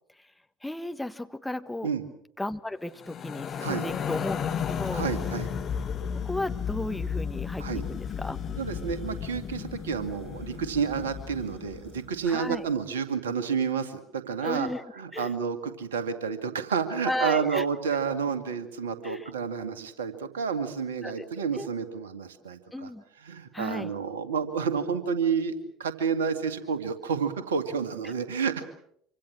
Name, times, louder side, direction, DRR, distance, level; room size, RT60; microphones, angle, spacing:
voice 1, 0.6-1.9 2.4-5.1 6.2-8.4 12.2-12.6 14.4-14.8 15.1-15.4 17.0-17.6 19.0-19.3 21.0-21.3 21.5-21.7 22.7-23.0 23.5-23.9 28.0-28.1, left 1 dB, 5° left, 9 dB, 1.4 m, -34 dB
sound 1, 2.9-12.3, left 7 dB, 40° left, 2.3 m, -34 dB
voice 2, 4.9-5.5 7.6-7.8 8.6-14.7 15.0-22.9 23.2-25.5 25.8-28.6, right 6 dB, 75° right, 10 dB, 2.1 m, -30 dB
26.5 x 25.5 x 6.2 m, 0.71 s
figure-of-eight pair, 65°, 0 cm